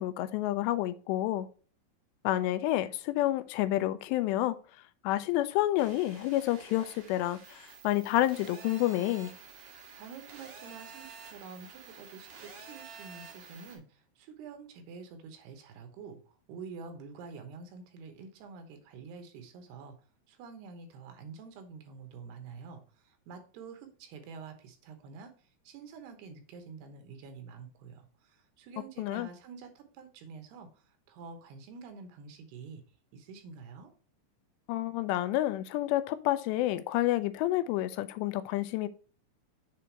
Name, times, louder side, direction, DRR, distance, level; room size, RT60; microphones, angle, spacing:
voice 1, 0.0-1.5 2.2-4.6 5.0-9.3 29.0-29.3 34.7-38.9, left 15 dB, 85° left, 2.8 m, -29 dB
sound 1, 5.8-13.8, right 5 dB, 55° right, 1.7 m, -50 dB
voice 2, 9.7-20.0 20.3-25.3 25.6-32.8 33.1-33.9, right 5 dB, 75° right, 3.0 m, -48 dB
7.6 x 4.0 x 4.5 m
omnidirectional pair, 4.9 m